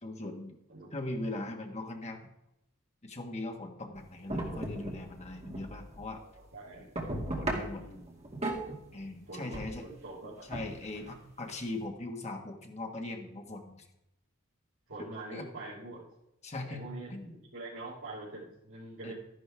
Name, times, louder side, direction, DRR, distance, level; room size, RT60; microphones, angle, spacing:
voice 1, 0.0-0.5 0.9-2.2 3.0-6.2 7.4-7.9 8.9-9.9 10.5-13.9 15.3-15.4 16.4-17.3 19.0-19.1, left 2 dB, 30° left, 3 dB, 1.5 m, -40 dB
sound 1, 3.9-4.0 4.3-6.4 6.7-9.1 9.5-9.8 10.5-11.8, right 1 dB, 30° right, 2.2 m, -37 dB
voice 2, 6.1-6.9 7.7-8.2 9.3-10.4 14.9-16.0 16.6-19.1, right 2 dB, 70° right, -9 dB, 3.7 m, -45 dB
13.0 x 10.5 x 3.5 m, 0.83 s
head